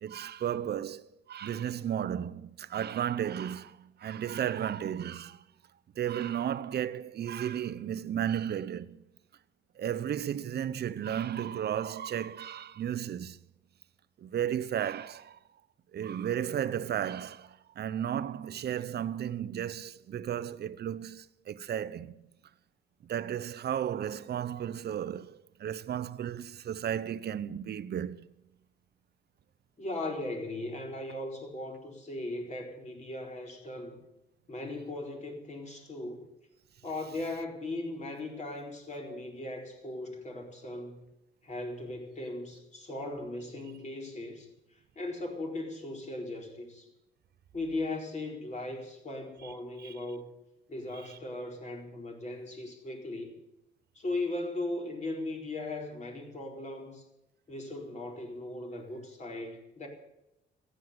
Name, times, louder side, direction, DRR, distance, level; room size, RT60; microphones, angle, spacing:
voice 1, 0.0-5.4 6.0-9.0 9.8-13.4 14.2-15.4 15.9-22.2 23.0-28.3 49.4-49.5 49.8-49.9 51.1-51.2, right 9 dB, 55° right, 0.8 m, -34 dB
voice 2, 29.8-34.0 34.5-36.2 36.8-41.0 41.4-46.9 47.5-50.3 50.7-53.3 53.9-57.0 57.5-59.9, left 2 dB, 35° left, 4.3 m, -38 dB
14.0 x 9.3 x 9.5 m
cardioid pair, 90°, 20 cm